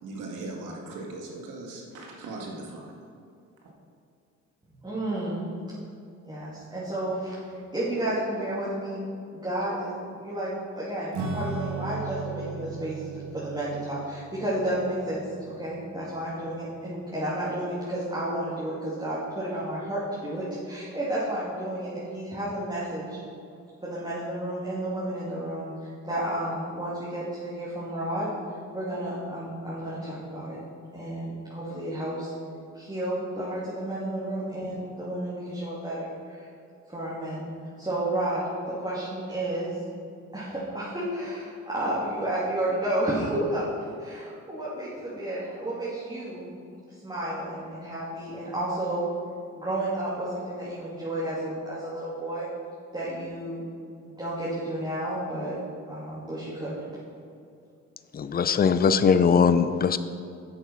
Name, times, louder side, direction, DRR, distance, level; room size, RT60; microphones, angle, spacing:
voice 1, 0.0-2.9, right 2 dB, 90° right, -1 dB, 2.1 m, -38 dB
voice 2, 4.6-5.4 6.2-7.4 7.7-9.0 9.3-23.2 23.8-28.3 28.7-30.6 30.9-32.3 32.7-36.5 36.9-37.4 37.8-39.7 40.3-43.7 44.0-46.5 47.0-49.0 49.5-52.5 52.9-53.7 54.2-55.6 55.9-56.8, right 1 dB, 15° right, -9 dB, 2.8 m, -31 dB
Acoustic guitar / Strum, 11.1-17.1, right 5 dB, 70° right, 1.7 m, -37 dB
voice 3, 58.1-60.0, left 6 dB, 30° left, 12 dB, 0.5 m, -20 dB
9.2 x 8.1 x 5.7 m, 2.5 s
cardioid pair, 90°, 30 cm